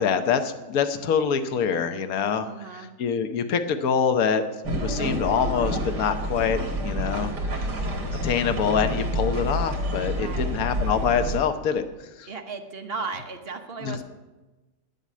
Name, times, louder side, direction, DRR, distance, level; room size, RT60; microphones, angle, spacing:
voice 1, 0.0-4.4 4.8-7.3 8.2-12.3 13.8-14.0, left 7 dB, 65° left, 8 dB, 1.3 m, -25 dB
voice 2, 2.4-2.9 10.1-10.6 12.3-14.0, right 4 dB, 45° right, 5 dB, 0.9 m, -35 dB
sound 1, 4.6-11.4, equal, 75° right, 2.4 m, -28 dB
9.7 x 8.3 x 8.7 m, 1.1 s
omnidirectional pair, 1.8 m